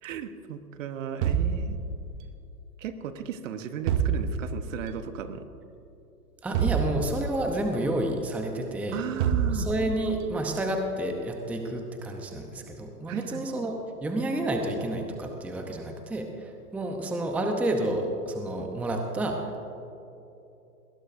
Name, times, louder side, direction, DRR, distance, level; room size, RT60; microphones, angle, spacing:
voice 1, 0.0-1.8 2.8-5.4 8.9-9.7 13.1-13.4, right 8 dB, 50° right, 9 dB, 1.2 m, -35 dB
sound 1, 1.2-2.3 3.9-4.8 6.5-7.6 9.2-10.2, right 7 dB, 30° right, 0.9 m, -27 dB
voice 2, 6.4-9.0 9.5-19.6, right 1 dB, 5° right, 3 dB, 0.8 m, -30 dB
21.0 x 19.5 x 2.7 m, 2.9 s
hypercardioid pair, 125°, 48 cm